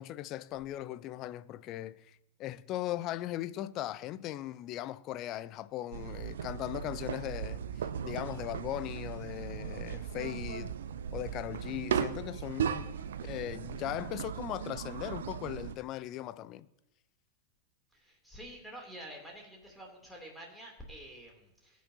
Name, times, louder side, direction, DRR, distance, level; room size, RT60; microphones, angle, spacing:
voice 1, 0.0-10.8 11.1-13.0 13.2-16.7, left 13 dB, 35° left, 0.6 m, -39 dB
sound 1, 5.9-15.7, right 8 dB, 65° right, 0.6 m, -37 dB
voice 2, 17.9-21.8, right 1 dB, ahead, 3.1 m, -48 dB
22.5 x 9.3 x 2.9 m
figure-of-eight pair, 90°, 0 cm